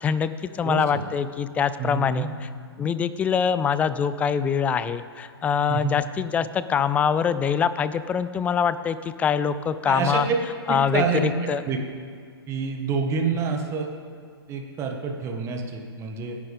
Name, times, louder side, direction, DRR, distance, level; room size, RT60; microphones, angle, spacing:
voice 1, 0.0-2.5 2.8-10.3 10.7-11.6, left 7 dB, 10° left, 14 dB, 0.4 m, -24 dB
voice 2, 0.6-1.1 1.8-2.3 5.7-6.0 9.8-10.3 10.7-11.2 11.7-11.8 12.5-13.9 14.5-16.4, right 5 dB, 20° right, 2 dB, 1.5 m, -27 dB
26.5 x 10.5 x 3.6 m, 2.1 s
figure-of-eight pair, 120°, 14 cm